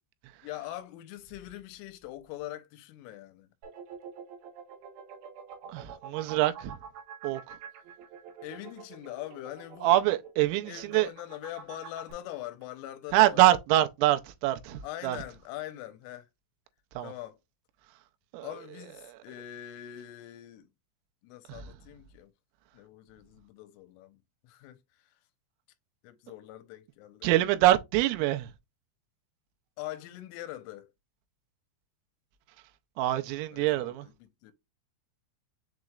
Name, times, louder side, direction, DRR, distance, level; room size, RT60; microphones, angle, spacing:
voice 1, 0.4-3.5 8.4-10.0 10.7-13.4 14.8-16.3 17.0-17.4 18.4-20.7 21.2-22.3 22.7-25.1 26.0-27.3 29.8-30.9 33.5-34.5, left 14 dB, 85° left, 3.1 m, -43 dB
sound 1, 3.6-12.1, right 7 dB, 65° right, 3.4 m, -46 dB
voice 2, 5.7-6.8 7.2-7.4 9.8-11.1 13.1-15.2 17.0-17.1 18.3-18.5 19.0-19.2 21.5-21.6 27.2-28.5 33.0-34.1, right 15 dB, 85° right, 3.2 m, -25 dB
7.5 x 3.0 x 2.3 m
omnidirectional pair, 5.8 m